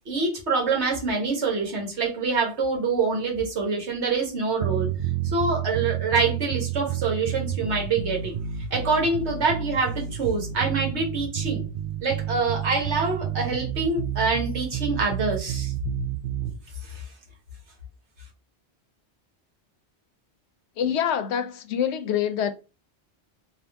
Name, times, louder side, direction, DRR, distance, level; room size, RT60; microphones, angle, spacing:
voice 1, 0.1-4.9 5.2-8.3 8.7-11.6 12.0-15.7 16.8-17.0, right 4 dB, 80° right, 1.6 m, -25 dB
sound 1, 4.6-16.6, right 11 dB, 60° right, 0.6 m, -30 dB
voice 2, 20.8-22.5, left 9 dB, 80° left, 0.9 m, -25 dB
3.6 x 2.8 x 3.4 m
omnidirectional pair, 1.1 m